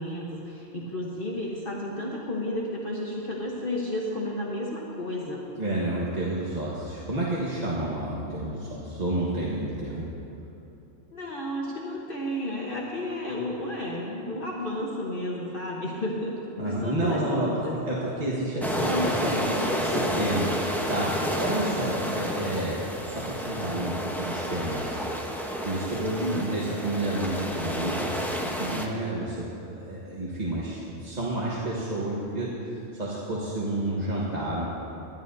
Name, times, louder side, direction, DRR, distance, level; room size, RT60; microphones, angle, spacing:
voice 1, 0.0-5.4 11.1-17.8 18.8-20.3 26.1-26.5, left 1 dB, 50° left, -3 dB, 1.2 m, -32 dB
voice 2, 5.6-10.1 16.6-19.3 19.8-25.3 25.6-34.7, right 1 dB, 35° right, -7 dB, 1.4 m, -30 dB
sound 1, 18.6-28.9, equal, ahead, 0.6 m, -30 dB
20.0 x 11.5 x 2.6 m, 2.9 s
omnidirectional pair, 1.3 m